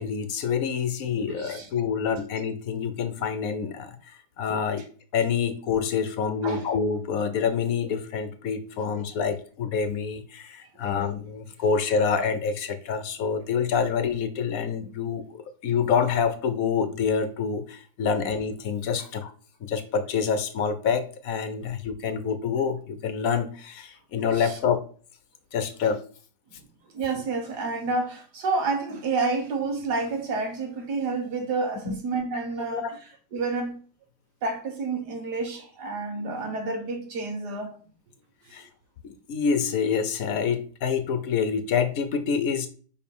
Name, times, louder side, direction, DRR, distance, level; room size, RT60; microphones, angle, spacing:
voice 1, 0.0-4.8 5.1-15.2 15.6-19.3 19.6-24.8 25.5-26.0 31.9-32.0 32.7-32.9 38.5-38.7 39.0-42.7, left 6 dB, 65° left, 1.2 m, -27 dB
voice 2, 26.9-33.0 33.3-33.8 34.4-37.8, right 3 dB, 85° right, 2.0 m, -29 dB
5.2 x 4.7 x 5.4 m
omnidirectional pair, 1.7 m